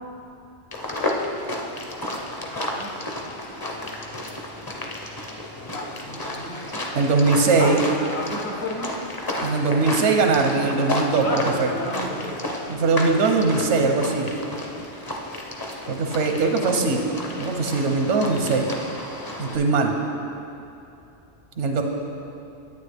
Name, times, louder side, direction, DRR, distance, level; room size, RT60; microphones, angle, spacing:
sound 1, 0.7-19.6, left 1 dB, 25° left, 0.6 m, -32 dB
voice 1, 2.6-3.0 5.6-6.9 7.6-9.0 11.1-12.4, left 1 dB, 65° left, -1 dB, 1.4 m, -32 dB
voice 2, 6.9-7.8 9.4-11.7 12.7-14.3 15.9-17.0 17.4-18.7 19.4-19.9 21.6-21.8, right 3 dB, 85° right, 3 dB, 1.1 m, -21 dB
9.8 x 8.6 x 3.4 m, 2.7 s
omnidirectional pair, 1.2 m